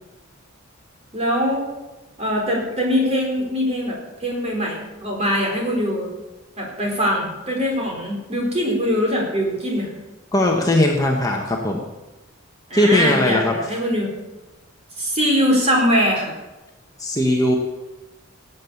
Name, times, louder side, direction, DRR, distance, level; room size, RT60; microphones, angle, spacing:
voice 1, 1.1-1.7 2.2-6.1 6.6-9.9 12.7-14.1 15.0-16.3, equal, 30° right, -1 dB, 4.4 m, -22 dB
voice 2, 10.3-11.8 12.7-13.6 17.0-17.6, left 1 dB, 15° left, 0 dB, 1.3 m, -19 dB
18.0 x 8.1 x 7.1 m, 1.1 s
head